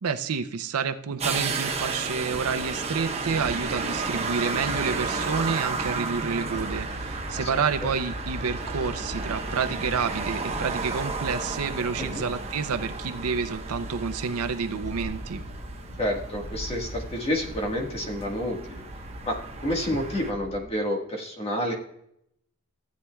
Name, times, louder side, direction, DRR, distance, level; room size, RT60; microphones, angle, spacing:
voice 1, 0.0-15.4, right 5 dB, 80° right, 8 dB, 0.6 m, -29 dB
sound 1, 1.2-20.3, right 4 dB, 30° right, 1.0 m, -33 dB
sound 2, 6.4-20.6, equal, 55° left, 1.0 m, -40 dB
voice 2, 16.0-18.8 19.2-19.4 19.6-21.7, equal, 25° left, 1 dB, 1.5 m, -29 dB
15.5 x 8.3 x 2.3 m, 0.75 s
head